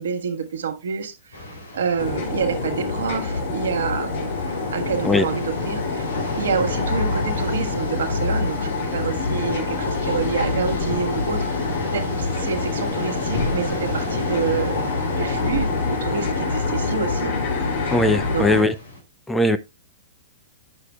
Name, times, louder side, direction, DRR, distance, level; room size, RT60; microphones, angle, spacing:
voice 1, 0.0-1.4 1.7-4.3 4.7-6.1 6.4-11.5 11.9-17.3 18.3-18.7, right 6 dB, 65° right, 1.3 m, -27 dB
sound 1, 1.3-19.0, left 2 dB, 85° left, 3.0 m, -33 dB
sound 2, 2.0-18.6, left 4 dB, 55° left, 2.6 m, -26 dB
voice 2, 17.9-18.7 19.3-19.6, left 1 dB, 5° left, 0.4 m, -19 dB
9.0 x 6.3 x 2.3 m
figure-of-eight pair, 110°, 0 cm